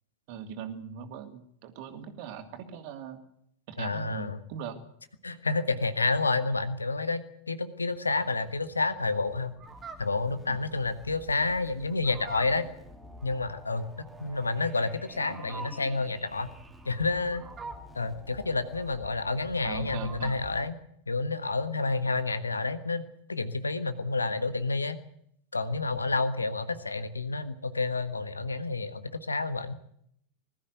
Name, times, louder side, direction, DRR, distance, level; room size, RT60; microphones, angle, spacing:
voice 1, 0.3-3.2 3.7-4.8 10.5-10.6 15.2-15.4 19.6-20.3, right 7 dB, 45° right, 7 dB, 2.6 m, -40 dB
voice 2, 3.8-4.4 5.2-9.6 10.0-12.7 13.2-16.5 16.8-17.4 17.9-20.7 21.1-23.0 23.3-25.0 25.5-29.8, left 3 dB, 80° left, 12 dB, 1.4 m, -29 dB
sound 1, 7.8-20.7, equal, 5° right, 2.9 m, -50 dB
Fowl, 9.5-20.6, right 4 dB, 20° right, 2.4 m, -47 dB
21.0 x 13.5 x 9.3 m, 0.71 s
figure-of-eight pair, 90°, 0 cm